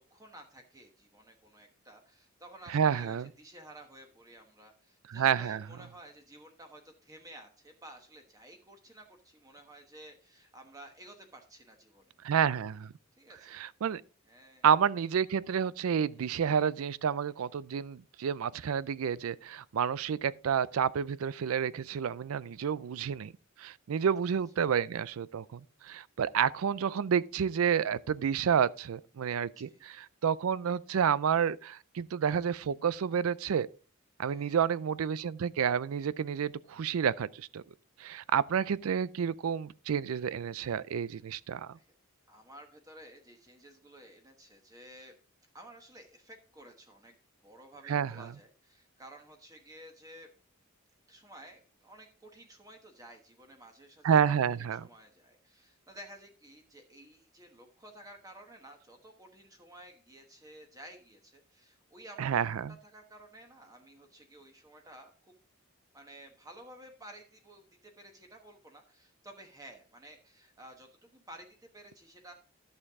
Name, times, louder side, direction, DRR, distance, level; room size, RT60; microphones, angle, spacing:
voice 1, 0.0-12.2 13.2-13.6 14.2-14.7 26.8-26.9 29.5-29.8 32.6-32.8 34.2-34.6 41.7-41.9 42.3-45.1 45.5-47.1 47.4-50.3 51.1-62.4 62.8-65.3 65.9-72.3, right 1 dB, 15° right, 1.1 m, -53 dB
voice 2, 2.7-3.3 5.1-5.6 12.2-12.9 13.5-14.0 14.6-23.3 23.6-33.7 34.2-37.6 38.0-41.8 47.9-48.3 54.0-54.9 62.2-62.7, right 7 dB, 80° right, 0.4 m, -30 dB
11.5 x 6.6 x 3.6 m
head